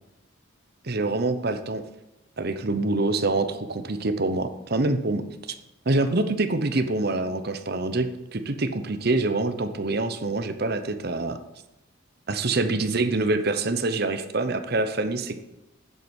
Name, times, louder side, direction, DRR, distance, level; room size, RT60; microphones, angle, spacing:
voice 1, 0.8-1.8 2.4-5.2 5.9-11.4 12.3-15.4, right 2 dB, 50° right, 9 dB, 0.9 m, -25 dB
8.1 x 7.7 x 8.2 m, 0.97 s
head